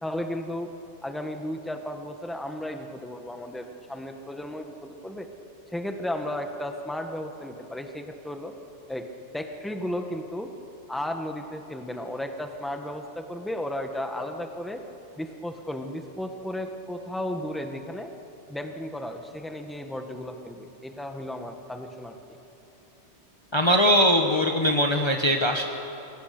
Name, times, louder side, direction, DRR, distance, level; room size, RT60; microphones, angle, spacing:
voice 1, 0.0-0.7 1.0-5.3 5.7-8.5 8.9-9.0 9.3-10.5 10.9-14.8 15.2-18.1 18.5-22.1, left 1 dB, ahead, 4 dB, 1.5 m, -34 dB
voice 2, 23.5-25.7, equal, 25° left, 3 dB, 1.1 m, -21 dB
28.5 x 22.5 x 6.7 m, 2.9 s
omnidirectional pair, 1.2 m